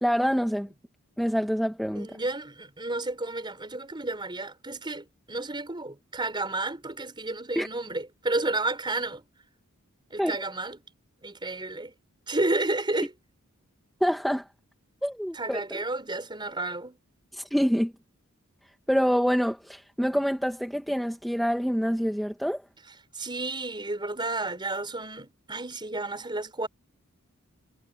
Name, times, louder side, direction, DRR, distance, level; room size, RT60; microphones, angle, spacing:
voice 1, 0.0-0.7 1.2-2.1 7.5-7.7 10.2-10.3 14.0-14.4 15.0-15.8 17.3-17.9 18.9-22.6, equal, ahead, 1.1 m, -26 dB
voice 2, 1.9-9.2 10.1-10.8 11.2-11.9 12.3-13.1 15.3-17.0 23.1-26.7, right 2 dB, 20° right, 4.7 m, -31 dB
head